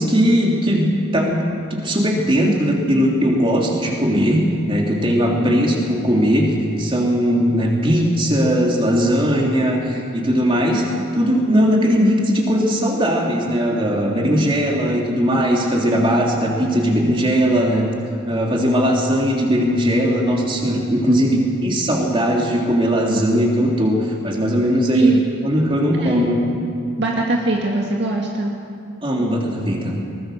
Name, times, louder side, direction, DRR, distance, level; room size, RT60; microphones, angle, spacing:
voice 1, 0.0-17.9 18.2-25.1 25.4-26.4 29.0-29.9, equal, 25° right, -1 dB, 3.3 m, -19 dB
voice 2, 5.3-5.6 21.0-21.5 24.9-25.3 26.0-26.3 27.0-28.6, right 1 dB, 55° right, -1 dB, 2.1 m, -23 dB
22.5 x 20.0 x 6.7 m, 2.5 s
head